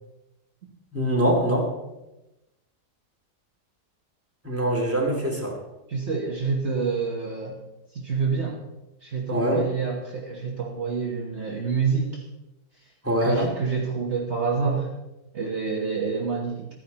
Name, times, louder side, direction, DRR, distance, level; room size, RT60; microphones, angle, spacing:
voice 1, 0.9-1.7 4.4-5.6 9.3-9.6 13.0-13.5, equal, 10° right, -2 dB, 2.4 m, -23 dB
voice 2, 5.9-7.6 7.9-8.6 9.0-12.2 13.2-15.0 15.3-16.7, right 5 dB, 45° right, -1 dB, 1.4 m, -27 dB
14.0 x 10.0 x 4.1 m, 0.97 s
omnidirectional pair, 1.7 m